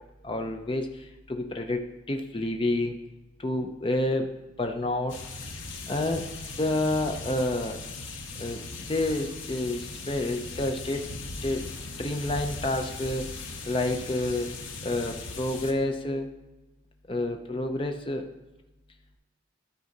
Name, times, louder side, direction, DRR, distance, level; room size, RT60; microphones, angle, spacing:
voice 1, 0.2-1.8 2.1-3.0 3.4-4.3 4.6-5.2 5.9-6.3 6.6-7.8 8.4-8.6 8.9-11.1 11.4-11.7 12.0-13.2 13.6-14.5 14.8-16.3 17.1-18.3, left 1 dB, 25° left, 4 dB, 0.6 m, -29 dB
sound 1, 5.1-15.7, left 3 dB, 75° left, 1.0 m, -39 dB
12.5 x 4.7 x 4.0 m, 1.0 s
head